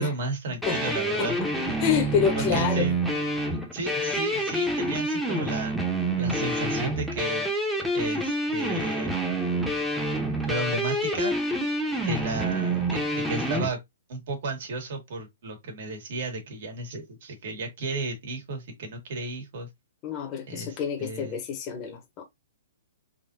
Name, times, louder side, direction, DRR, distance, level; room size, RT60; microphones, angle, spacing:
voice 1, 0.0-1.6 2.4-2.9 3.7-5.7 6.2-7.5 7.9-9.1 10.5-11.3 12.0-13.8 14.1-19.7 20.5-21.4, right 2 dB, 60° right, 1.8 m, -33 dB
sound 1, 0.6-13.7, right 1 dB, ahead, 0.9 m, -27 dB
voice 2, 1.8-2.9 20.0-22.2, left 7 dB, 30° left, 1.0 m, -27 dB
3.8 x 2.7 x 2.7 m
hypercardioid pair, 140°, 0 cm